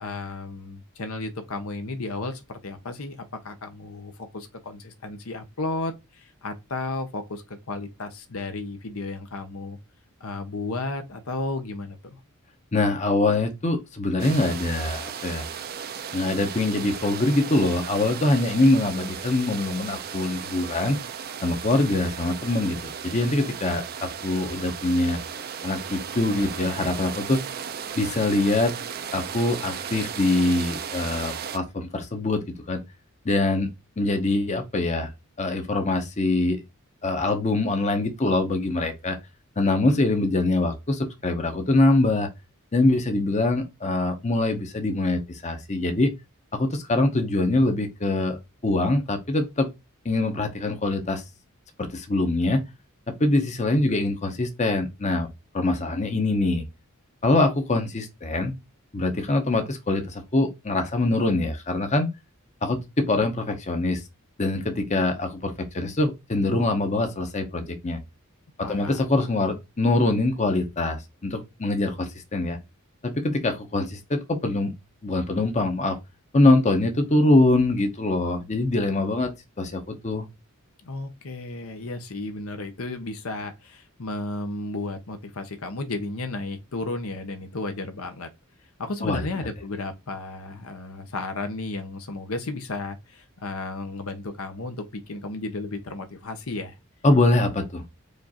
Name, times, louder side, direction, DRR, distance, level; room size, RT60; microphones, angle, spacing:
voice 1, 0.0-3.2 3.4-9.8 10.2-12.2 68.6-69.1 80.8-88.3 88.8-96.8, left 2 dB, 70° left, 0.8 m, -33 dB
voice 2, 12.7-15.4 16.1-21.0 21.4-25.2 25.6-27.4 28.0-28.7 29.1-32.8 33.2-35.1 35.4-36.6 37.0-39.2 39.6-42.3 42.7-46.1 46.5-48.4 48.6-49.7 50.0-51.2 51.8-52.6 53.1-55.3 55.5-56.7 57.2-58.6 58.9-62.1 62.6-64.0 64.4-68.0 68.7-72.6 73.0-74.7 75.0-76.0 76.3-80.3 89.0-89.2 97.0-97.8, left 2 dB, 30° left, 0.8 m, -24 dB
sound 1, 14.2-31.6, right 7 dB, 45° right, 0.5 m, -35 dB
5.0 x 2.5 x 4.2 m
head